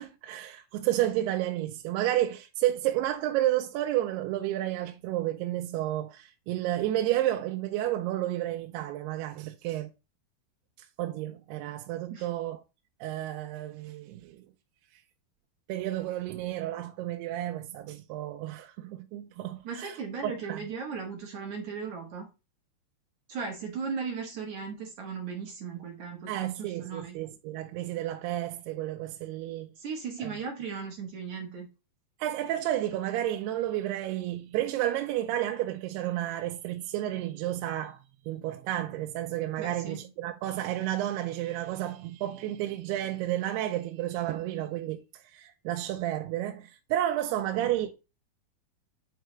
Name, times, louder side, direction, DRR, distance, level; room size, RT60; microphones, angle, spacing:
voice 1, 0.0-9.9 11.0-12.6 13.0-14.4 15.7-20.0 20.2-20.6 26.3-29.7 30.2-30.3 32.2-38.0 38.3-47.9, right 13 dB, 90° right, 2.6 m, -31 dB
voice 2, 19.6-22.2 23.3-27.2 29.8-31.7 39.6-40.1, right 5 dB, 60° right, 2.3 m, -37 dB
8.9 x 4.6 x 3.1 m
omnidirectional pair, 4.6 m